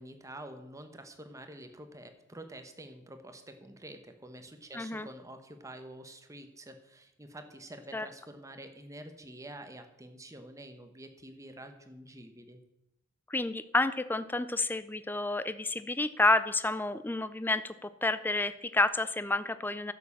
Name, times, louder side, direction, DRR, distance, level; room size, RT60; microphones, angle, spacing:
voice 1, 0.0-12.6, right 1 dB, 15° right, 7 dB, 1.2 m, -48 dB
voice 2, 4.7-5.1 7.9-8.1 13.3-19.9, left 2 dB, 10° left, 14 dB, 0.4 m, -30 dB
11.0 x 7.2 x 7.2 m, 0.86 s
head